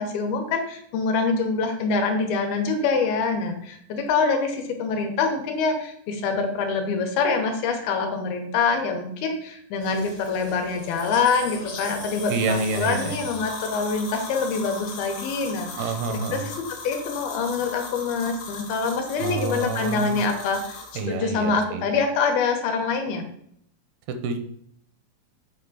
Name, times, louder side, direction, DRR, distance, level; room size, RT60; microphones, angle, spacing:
voice 1, 0.0-15.9 16.3-16.5 16.8-23.2, left 4 dB, 80° left, 4 dB, 2.7 m, -25 dB
sound 1, 9.8-21.0, left 4 dB, 60° left, 1.5 m, -38 dB
voice 2, 12.3-13.2 15.8-16.5 19.2-20.2 21.0-21.9 24.1-24.4, right 4 dB, 80° right, 7 dB, 2.6 m, -28 dB
7.6 x 3.5 x 4.8 m, 0.70 s
omnidirectional pair, 4.4 m